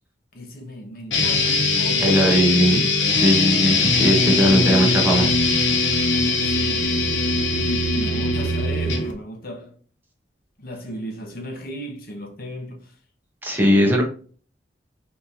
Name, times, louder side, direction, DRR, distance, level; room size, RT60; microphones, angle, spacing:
voice 1, 0.3-2.9 3.8-5.1 6.4-7.0 7.5-9.8 10.6-12.9, equal, 55° left, 1.0 m, -35 dB
sound 1, 1.1-9.1, left 3 dB, 85° left, 0.9 m, -21 dB
voice 2, 2.0-5.3 13.4-14.0, equal, 10° right, 1.0 m, -19 dB
4.3 x 3.4 x 2.7 m
head